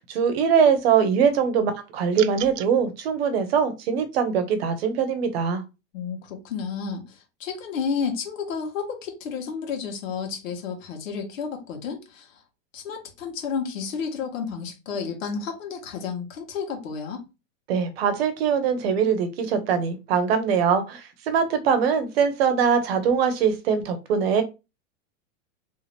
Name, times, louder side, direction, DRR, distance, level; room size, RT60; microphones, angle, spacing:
voice 1, 0.0-5.6 17.7-24.4, right 7 dB, 50° right, 0.9 m, -22 dB
sound 1, 2.1-2.7, right 13 dB, 75° right, 0.5 m, -35 dB
voice 2, 5.9-12.4 12.7-17.2, left 6 dB, 80° left, 1.8 m, -31 dB
3.3 x 2.8 x 3.4 m
supercardioid pair, 170°, 39 cm